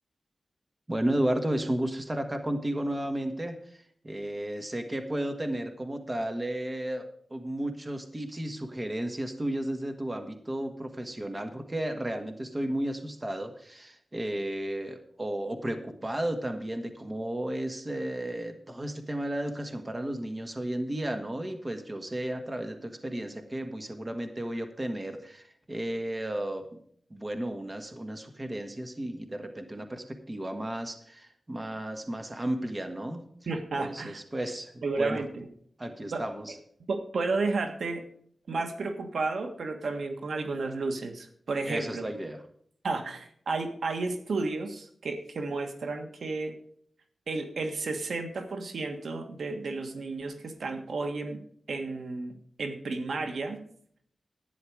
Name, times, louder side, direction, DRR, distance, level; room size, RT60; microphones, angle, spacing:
voice 1, 0.9-26.8 27.1-33.2 33.8-35.2 35.8-36.6 41.7-42.4, right 1 dB, 25° right, 6 dB, 1.5 m, -33 dB
voice 2, 33.5-34.2 34.8-35.5 36.1-36.2 36.9-38.0 38.5-42.1 42.8-46.5 47.3-51.4 51.7-53.6, right 3 dB, 80° right, 6 dB, 1.5 m, -32 dB
12.0 x 9.6 x 4.8 m, 0.62 s
wide cardioid pair, 95°, 0 cm